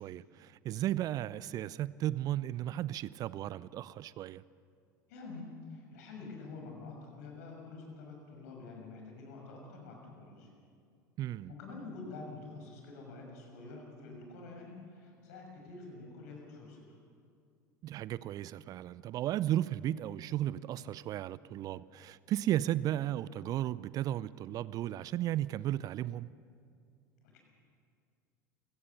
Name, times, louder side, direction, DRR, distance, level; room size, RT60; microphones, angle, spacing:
voice 1, 0.0-4.4 11.2-11.5 17.8-26.3, right 13 dB, 40° right, 0.5 m, -35 dB
voice 2, 5.1-10.5 11.5-17.0 27.2-27.4, left 3 dB, 60° left, 6.4 m, -47 dB
28.5 x 17.5 x 6.8 m
figure-of-eight pair, 75°, 10 cm